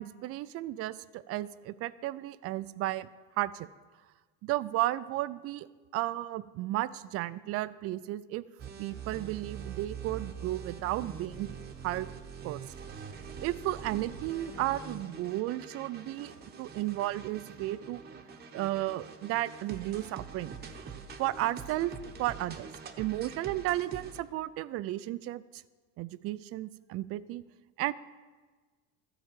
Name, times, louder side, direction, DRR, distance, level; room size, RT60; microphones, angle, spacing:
voice 1, 0.0-3.1 3.4-3.7 4.4-5.7 5.9-8.4 8.8-11.5 11.8-12.1 12.4-12.7 13.4-16.3 16.6-18.0 18.5-20.6 21.2-21.9 22.2-22.7 23.0-25.6 26.0-27.4 27.8-27.9, right 15 dB, 45° right, 16 dB, 0.4 m, -33 dB
sound 1, 8.6-24.2, right 6 dB, 30° right, 0.9 m, -44 dB
14.0 x 4.9 x 7.4 m, 1.4 s
supercardioid pair, 120°, 33 cm